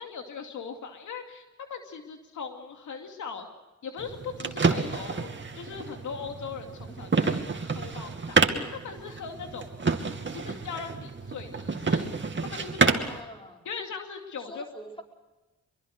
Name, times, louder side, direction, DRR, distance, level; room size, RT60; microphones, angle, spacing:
voice 1, 0.0-1.4 1.7-3.5 3.8-10.0 10.3-12.1 12.4-13.1 13.6-14.7, left 6 dB, 90° left, 5 dB, 2.5 m, -39 dB
sound 1, 4.0-13.2, right 4 dB, 40° right, 2.5 m, -29 dB
voice 2, 13.1-13.7 14.5-15.0, equal, 20° left, 2 dB, 5.2 m, -44 dB
24.5 x 23.0 x 6.5 m, 1.1 s
cardioid pair, 60°, 29 cm